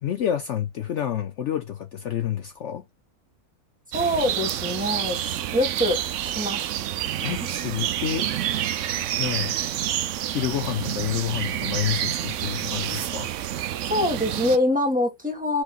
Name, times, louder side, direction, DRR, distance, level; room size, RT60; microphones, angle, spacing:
voice 1, 0.0-2.8 7.2-8.3 9.2-9.5 10.2-13.3, left 10 dB, 60° left, 0.9 m, -29 dB
voice 2, 3.9-6.6 7.2-7.5 13.9-15.6, left 1 dB, 5° right, 1.7 m, -25 dB
sound 1, 3.9-14.6, right 11 dB, 65° right, 0.9 m, -28 dB
6.0 x 3.4 x 2.4 m
omnidirectional pair, 1.5 m